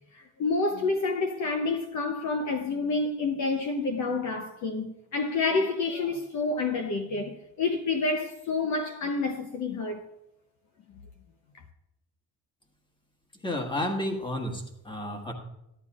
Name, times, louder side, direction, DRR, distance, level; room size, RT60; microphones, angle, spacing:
voice 1, 0.1-10.0, left 3 dB, 50° left, 0.9 m, -28 dB
voice 2, 13.4-15.3, left 1 dB, 15° left, 1.6 m, -31 dB
14.0 x 11.5 x 2.5 m
cardioid pair, 135°, 36 cm